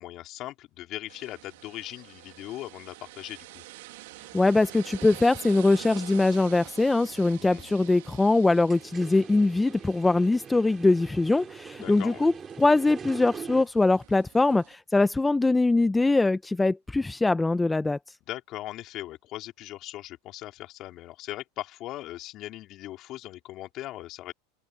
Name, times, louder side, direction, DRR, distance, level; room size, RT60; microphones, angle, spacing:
voice 1, 0.0-3.6 7.3-7.7 11.8-12.3 18.3-24.3, left 15 dB, 45° left, 4.1 m, -39 dB
sound 1, 1.1-14.7, right 19 dB, 75° right, 2.2 m, -48 dB
voice 2, 4.3-12.3 12.6-18.0, left 2 dB, 10° left, 0.6 m, -22 dB
sound 2, 8.6-13.6, right 6 dB, 25° right, 4.8 m, -43 dB
open air
supercardioid pair, 115°, 0 cm